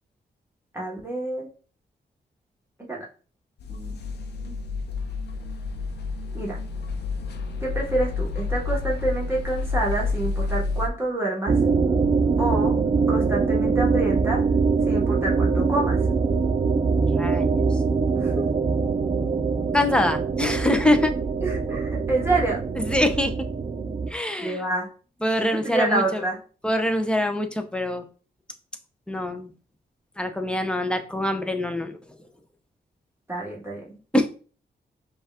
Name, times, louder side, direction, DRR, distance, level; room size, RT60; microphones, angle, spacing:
voice 1, 0.7-1.5 2.9-3.0 3.7-4.1 4.4-4.6 6.3-6.6 7.6-11.6 12.4-12.8 13.1-14.5 14.9-16.0 18.2-18.5 21.4-22.6 24.4-24.9 25.4-26.4 33.3-34.0, right 2 dB, 15° right, -3 dB, 1.3 m, -27 dB
sound 1, 3.6-10.9, left 4 dB, 75° left, 0.7 m, -29 dB
sound 2, 11.5-24.1, right 4 dB, 35° right, 0.6 m, -23 dB
voice 2, 17.1-17.6 19.7-21.3 22.8-23.5 24.1-24.6 25.2-26.2 26.6-28.0 29.1-29.5 30.2-32.0 34.1-34.3, left 1 dB, 5° left, 6 dB, 0.6 m, -24 dB
5.2 x 2.4 x 3.5 m, 0.37 s
cardioid pair, 100°, 17 cm